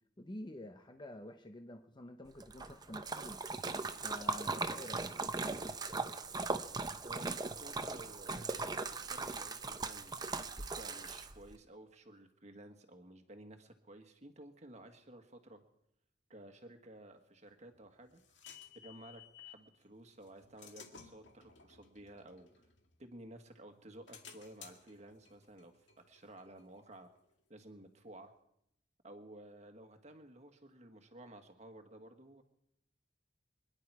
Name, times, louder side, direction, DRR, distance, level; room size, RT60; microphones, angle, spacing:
voice 1, 0.2-3.4 4.0-5.1, left 1 dB, 25° left, 5 dB, 0.8 m, -49 dB
Splash splatter, 2.4-11.5, right 3 dB, 20° right, 0.7 m, -39 dB
voice 2, 7.0-10.2 10.5-15.6 16.3-18.2 18.7-22.7 23.0-25.8 26.1-27.1 27.5-28.3 29.0-32.4, right 1 dB, 40° right, 6 dB, 1.6 m, -54 dB
sound 1, 17.5-19.7 20.2-23.3 23.7-27.2, left 7 dB, 80° left, 2.0 m, -57 dB
25.5 x 10.5 x 4.8 m, 0.77 s
head